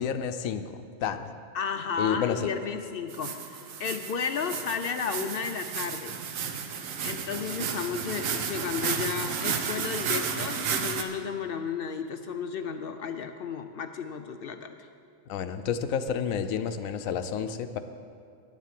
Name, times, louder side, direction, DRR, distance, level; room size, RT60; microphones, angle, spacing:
voice 1, 0.0-1.3 2.0-2.5 15.3-17.8, left 7 dB, 85° left, 9 dB, 1.0 m, -30 dB
voice 2, 1.5-6.2 7.0-14.9, left 6 dB, 60° left, 7 dB, 0.6 m, -33 dB
sound 1, 3.1-11.0, right 6 dB, 80° right, 1.2 m, -32 dB
10.0 x 7.4 x 7.5 m, 2.4 s
omnidirectional pair, 1.4 m